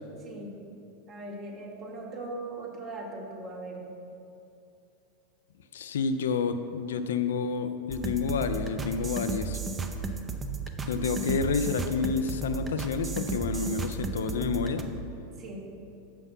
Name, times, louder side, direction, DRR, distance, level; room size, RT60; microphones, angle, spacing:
voice 1, 0.2-0.5 1.1-3.8 15.4-15.6, right 2 dB, 45° right, -1 dB, 1.6 m, -39 dB
voice 2, 5.7-9.6 10.9-14.9, left 5 dB, 80° left, 9 dB, 0.4 m, -29 dB
sound 1, 7.9-14.8, right 4 dB, 20° right, 0.7 m, -34 dB
7.0 x 5.8 x 5.4 m, 2.7 s
hypercardioid pair, 95°, 0 cm